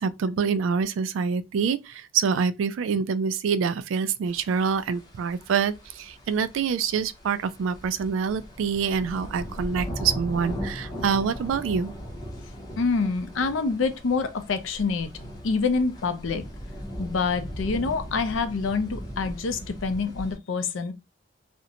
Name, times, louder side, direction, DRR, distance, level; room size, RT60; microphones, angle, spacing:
voice 1, 0.0-11.9, right 6 dB, 85° right, 0.3 m, -26 dB
sound 1, 4.3-20.4, equal, 20° left, 0.6 m, -38 dB
voice 2, 12.8-15.1 15.4-16.4 17.0-20.9, left 4 dB, 80° left, 0.5 m, -26 dB
2.5 x 2.1 x 2.7 m
head